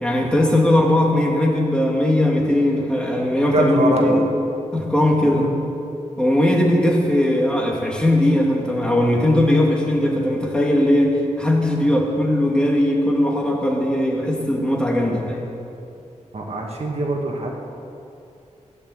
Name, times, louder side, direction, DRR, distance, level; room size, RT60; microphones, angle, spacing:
voice 1, 0.0-4.2 4.7-5.5 6.2-15.4, left 1 dB, 5° left, -1 dB, 2.2 m, -19 dB
voice 2, 3.5-4.3 5.3-5.5 16.3-17.5, right 2 dB, 55° right, 0 dB, 2.1 m, -22 dB
17.0 x 10.5 x 8.0 m, 2.7 s
wide cardioid pair, 130°, 13 cm